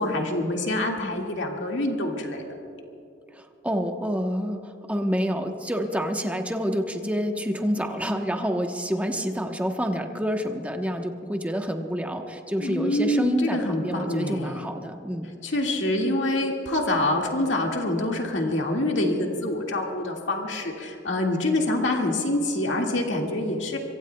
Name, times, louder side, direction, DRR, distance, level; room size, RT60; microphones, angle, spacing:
voice 1, 0.0-2.4 12.6-14.6 15.4-23.8, left 1 dB, 75° left, 0 dB, 2.0 m, -26 dB
voice 2, 3.3-15.3, equal, 10° right, 3 dB, 1.0 m, -28 dB
25.0 x 24.5 x 2.3 m, 2.8 s
head